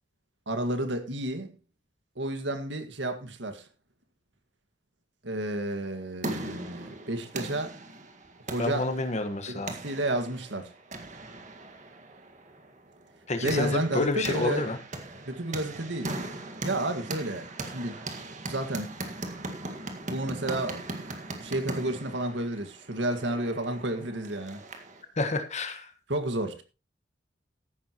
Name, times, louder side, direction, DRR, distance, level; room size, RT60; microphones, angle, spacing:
voice 1, 0.5-1.5 2.2-3.7 5.2-7.8 8.5-8.9 9.5-10.7 13.4-14.7 15.3-16.2 16.6-18.2 18.4-18.9 20.1-20.9 21.4-24.6 26.1-26.6, right 1 dB, 85° right, 1.9 m, -31 dB
sound 1, 5.8-25.0, right 2 dB, 45° right, 1.8 m, -39 dB
voice 2, 8.6-9.7 13.3-14.8 25.2-25.9, left 2 dB, 40° left, 1.5 m, -29 dB
14.0 x 11.0 x 3.1 m
head